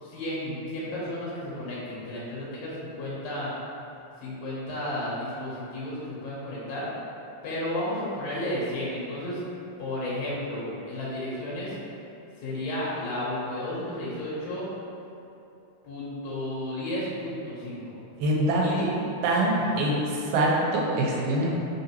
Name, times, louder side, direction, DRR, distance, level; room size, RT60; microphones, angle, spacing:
voice 1, 0.0-3.5 4.2-6.9 7.4-9.4 9.8-11.8 12.4-14.7 15.8-18.0 18.6-18.9 19.6-19.7, left 1 dB, 70° left, -8 dB, 1.8 m, -33 dB
voice 2, 18.2-18.9 19.2-21.5, right 1 dB, 90° right, -3 dB, 2.0 m, -24 dB
4.0 x 3.7 x 2.8 m, 2.7 s
omnidirectional pair, 3.4 m